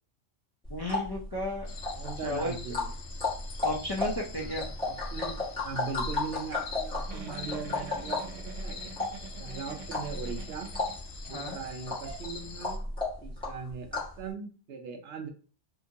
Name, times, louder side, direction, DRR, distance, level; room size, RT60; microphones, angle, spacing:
sound 1, 0.6-14.2, left 3 dB, 5° left, 1.0 m, -35 dB
voice 1, 0.7-1.7 2.2-2.5 3.6-4.7 11.3-11.6, left 1 dB, 40° left, -3 dB, 0.3 m, -33 dB
sound 2, 1.7-12.8, left 4 dB, 70° left, 0.8 m, -45 dB
voice 2, 1.9-2.9 4.4-8.8 9.4-10.7 11.3-12.8 13.2-15.3, right 5 dB, 65° right, 4 dB, 0.8 m, -40 dB
Giggle, 7.1-11.3 11.6-11.8 12.0-12.2, right 6 dB, 90° right, 1.0 m, -46 dB
2.8 x 2.4 x 2.7 m, 0.38 s
omnidirectional pair, 1.2 m